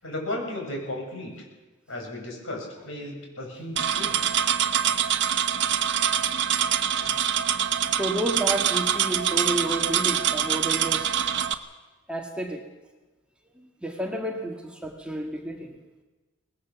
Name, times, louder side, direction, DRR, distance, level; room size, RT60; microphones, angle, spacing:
voice 1, 0.0-1.4 1.9-4.2, left 1 dB, 65° left, 1 dB, 6.7 m, -35 dB
sound 1, 3.8-11.5, right 9 dB, 60° right, 1.1 m, -24 dB
voice 2, 7.9-11.1 12.1-12.6 13.6-15.8, right 1 dB, 5° right, 1 dB, 1.7 m, -31 dB
24.0 x 19.5 x 7.1 m, 1.2 s
head